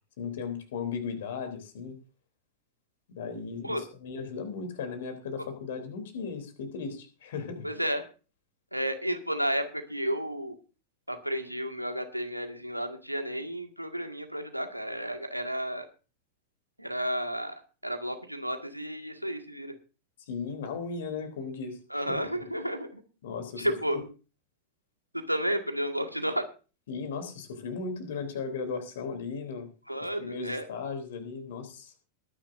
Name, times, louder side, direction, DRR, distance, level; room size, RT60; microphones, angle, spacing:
voice 1, 0.2-2.0 3.1-7.7 20.3-22.2 23.2-23.7 23.9-24.0 26.9-29.7 30.2-31.9, left 5 dB, 60° left, 7 dB, 3.3 m, -36 dB
voice 2, 7.6-8.0 8.7-10.6 11.1-15.9 16.8-17.5 17.8-19.7 21.9-23.0 23.6-24.0 25.1-26.5 29.9-30.6, equal, 90° right, 5 dB, 1.8 m, -32 dB
21.5 x 10.0 x 2.6 m, 0.34 s
figure-of-eight pair, 90°, 0 cm